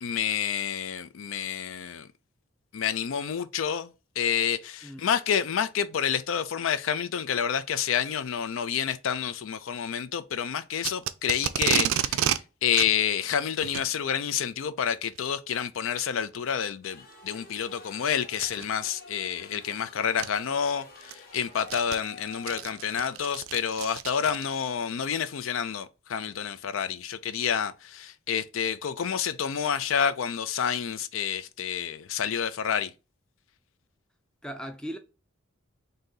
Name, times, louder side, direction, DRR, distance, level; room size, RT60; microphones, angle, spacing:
voice 1, 0.0-2.1 2.7-32.9, left 8 dB, 75° left, 0.4 m, -29 dB
Packing tape duct tape, 10.8-12.4 12.7-12.9 13.6-13.9 15.0-15.3 16.0-16.1 16.7-16.8 18.3-18.6 19.7-19.8 20.2-20.3 20.8-24.7, right 10 dB, 85° right, 0.4 m, -30 dB
sound 1, 16.8-23.2, left 4 dB, 45° left, 0.9 m, -49 dB
voice 2, 34.4-35.0, equal, 5° left, 0.4 m, -37 dB
3.9 x 2.7 x 3.8 m
head